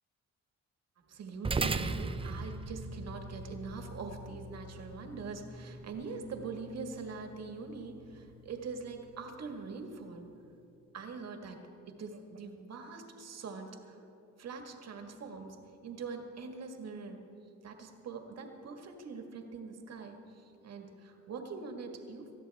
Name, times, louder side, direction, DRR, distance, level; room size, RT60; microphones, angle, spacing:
voice 1, 1.1-10.3 10.9-11.6 11.9-14.0 14.4-15.6 15.8-17.2 17.6-22.4, right 4 dB, 60° right, 4 dB, 1.9 m, -43 dB
sound 1, 1.4-10.1, right 3 dB, 20° right, 0.6 m, -40 dB
20.0 x 13.5 x 3.6 m, 2.8 s
cardioid pair, 90°, 30 cm